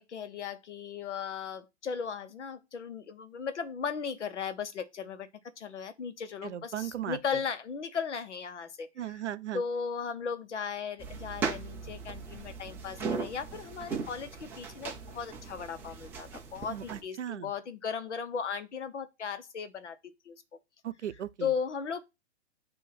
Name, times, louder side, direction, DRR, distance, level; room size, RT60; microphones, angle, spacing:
voice 1, 0.0-5.3 5.6-8.9 9.5-20.4 21.4-22.0, left 6 dB, 85° left, 1.1 m, -36 dB
voice 2, 6.4-7.2 9.0-9.6 16.7-17.5 20.8-21.5, right 11 dB, 85° right, 0.7 m, -37 dB
sound 1, 11.0-17.0, right 5 dB, 5° right, 0.4 m, -38 dB
7.6 x 2.8 x 5.7 m
hypercardioid pair, 140°, 34 cm